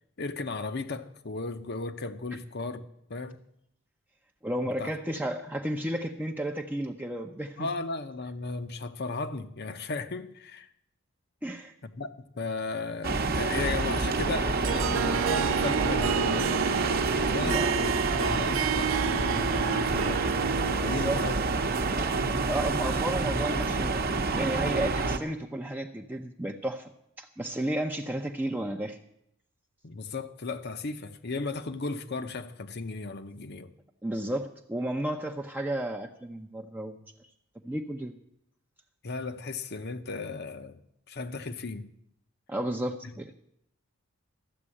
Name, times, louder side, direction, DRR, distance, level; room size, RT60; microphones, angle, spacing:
voice 1, 0.2-2.8 3.1-3.4 4.8-4.9 7.6-10.7 11.8-16.5 17.1-21.4 29.8-33.7 39.0-40.8 41.1-41.9 43.0-43.1, left 3 dB, 55° left, 0.9 m, -35 dB
voice 2, 4.4-7.7 11.4-11.7 17.4-17.7 20.8-21.2 22.5-26.9 27.2-29.0 34.0-36.9 37.6-38.2 42.5-43.4, right 1 dB, 10° right, 0.6 m, -32 dB
sound 1, 13.0-25.2, right 3 dB, 50° right, 1.0 m, -28 dB
Harp, 14.6-23.1, right 7 dB, 70° right, 0.5 m, -32 dB
13.5 x 7.4 x 9.9 m
head